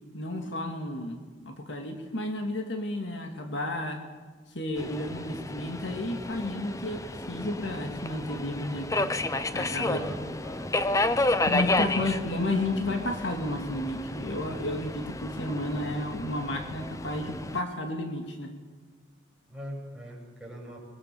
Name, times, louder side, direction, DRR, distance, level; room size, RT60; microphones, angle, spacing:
voice 1, 0.1-4.0 4.5-9.2 9.5-10.3 11.5-18.5, left 1 dB, 65° left, 4 dB, 2.3 m, -32 dB
Subway metro underground, 4.8-17.6, left 2 dB, 15° left, 0.7 m, -31 dB
voice 2, 9.9-10.7 11.4-12.1 19.5-20.8, equal, 5° right, -4 dB, 7.4 m, -40 dB
23.0 x 21.5 x 7.0 m, 1.4 s
head